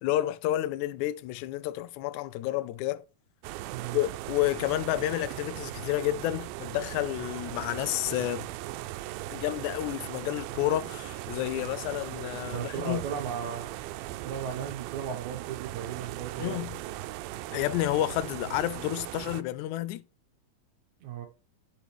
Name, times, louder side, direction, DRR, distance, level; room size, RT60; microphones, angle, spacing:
voice 1, 0.0-3.0 3.9-8.5 9.3-13.0 16.4-16.8 17.5-20.0, left 14 dB, 90° left, 1.7 m, -30 dB
sound 1, 3.4-19.4, right 15 dB, 90° right, 2.3 m, -39 dB
voice 2, 3.6-4.0 12.4-13.8 14.2-16.6 21.0-21.3, right 7 dB, 65° right, 2.2 m, -36 dB
10.0 x 6.7 x 3.1 m
omnidirectional pair, 4.1 m